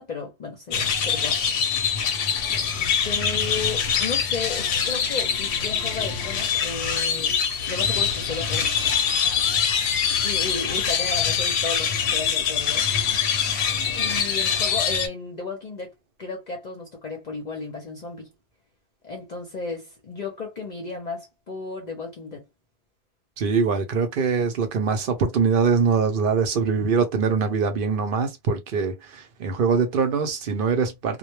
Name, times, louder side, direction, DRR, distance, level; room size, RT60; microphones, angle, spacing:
voice 1, 0.0-2.0 2.5-2.7 3.0-7.4 7.7-12.9 14.0-15.9 16.2-18.3 19.0-22.5, left 4 dB, 45° left, 0.7 m, -34 dB
sound 1, 0.7-15.1, left 7 dB, 85° left, 0.9 m, -24 dB
voice 2, 23.4-31.2, right 5 dB, 60° right, 0.7 m, -23 dB
2.2 x 2.1 x 3.0 m
omnidirectional pair, 1.1 m